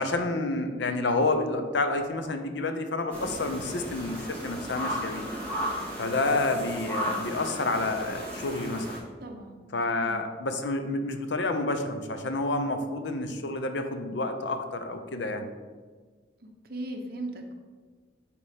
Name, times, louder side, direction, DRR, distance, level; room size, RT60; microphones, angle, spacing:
voice 1, 0.0-5.2 6.0-9.0 9.7-15.4, left 2 dB, 75° left, 7 dB, 0.7 m, -29 dB
sound 1, 3.1-9.0, equal, 10° left, 1.8 m, -35 dB
voice 2, 9.2-9.5 10.0-10.2 16.4-17.6, right 1 dB, 55° right, 3 dB, 0.9 m, -38 dB
9.4 x 4.2 x 3.6 m, 1.5 s
head